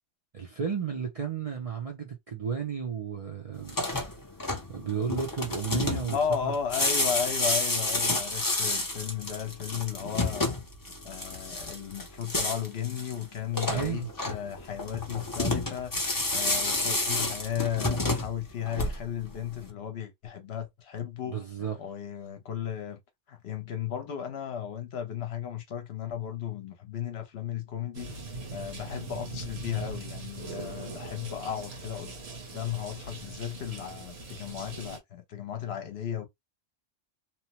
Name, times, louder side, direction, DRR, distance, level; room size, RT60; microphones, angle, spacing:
voice 1, 0.3-3.8 4.7-6.5 13.7-14.1 21.3-21.8, right 7 dB, 45° right, 0.5 m, -33 dB
sound 1, 3.6-19.3, left 2 dB, 25° left, 0.5 m, -30 dB
voice 2, 6.1-10.6 11.0-23.0 23.3-32.1 32.5-36.3, left 9 dB, 65° left, 0.9 m, -35 dB
sound 2, 27.9-35.0, right 3 dB, 60° right, 1.1 m, -41 dB
2.9 x 2.1 x 2.8 m
omnidirectional pair, 1.2 m